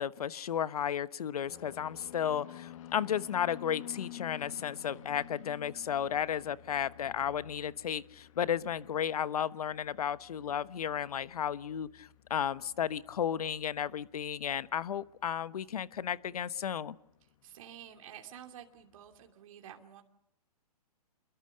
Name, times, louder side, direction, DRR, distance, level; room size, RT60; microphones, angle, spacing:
voice 1, 0.0-17.0, left 9 dB, 70° left, 15 dB, 1.2 m, -33 dB
sound 1, 1.5-18.5 18.7-19.3, left 12 dB, 50° left, 1.6 m, -52 dB
voice 2, 17.4-20.0, right 10 dB, 55° right, 4 dB, 2.8 m, -50 dB
27.5 x 23.0 x 6.7 m, 0.73 s
hypercardioid pair, 135°, 20 cm